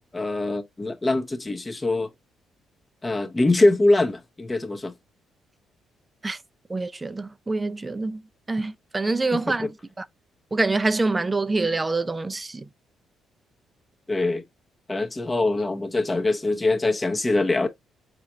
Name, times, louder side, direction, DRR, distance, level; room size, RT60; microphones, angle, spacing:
voice 1, 0.0-2.1 3.0-4.9 9.3-9.7 14.1-14.4 14.9-17.7, left 2 dB, 20° left, 0.7 m, -23 dB
voice 2, 6.7-8.2 8.5-9.7 10.0-10.1 10.5-12.6, right 3 dB, 20° right, 0.4 m, -25 dB
4.3 x 2.4 x 3.8 m
cardioid pair, 90°, 0 cm